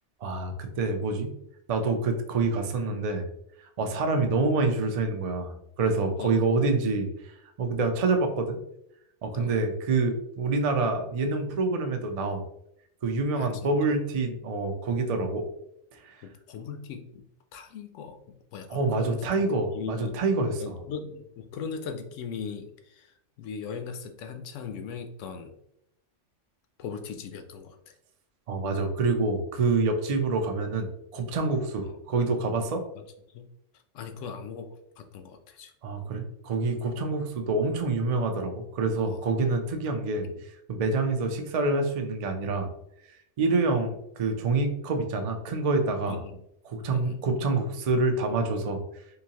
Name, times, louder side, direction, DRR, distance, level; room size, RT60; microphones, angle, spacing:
voice 1, 0.2-1.3 1.7-3.3 3.8-7.1 7.6-8.6 9.2-12.4 13.0-15.4 16.0-16.2 18.7-20.8 28.5-30.9 31.1-32.8 35.8-40.3 40.7-42.7 43.4-46.2 46.7-48.8, right 3 dB, 55° right, 4 dB, 0.4 m, -27 dB
voice 2, 13.4-14.0 16.2-17.2 17.5-18.2 18.5-20.2 20.6-23.1 23.4-25.5 26.8-27.9 30.1-30.2 31.8-32.0 32.9-33.0 33.3-33.4 33.9-34.7 35.0-35.7 38.9-39.2 40.3-40.4 46.1-46.4 46.9-47.2, left 6 dB, 80° left, 6 dB, 0.9 m, -39 dB
3.7 x 2.7 x 2.8 m, 0.77 s
omnidirectional pair, 1.3 m